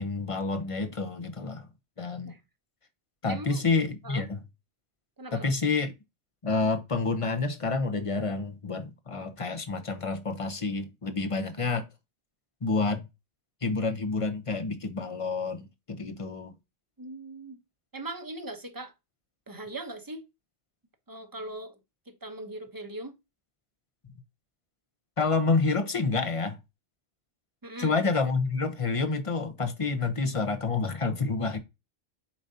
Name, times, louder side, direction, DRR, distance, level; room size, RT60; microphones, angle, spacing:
voice 1, 0.0-1.7 2.0-2.3 3.2-4.4 5.3-5.9 6.4-11.9 12.6-13.0 13.6-16.5 25.2-26.6 27.8-31.6, left 4 dB, 30° left, 0.9 m, -28 dB
voice 2, 3.3-3.6 4.0-4.3 5.2-5.5 17.0-17.6 17.9-18.9 19.5-20.2 21.1-21.8 22.1-23.1 27.6-27.9, right 2 dB, 20° right, 0.9 m, -40 dB
7.3 x 5.0 x 2.8 m
omnidirectional pair, 1.1 m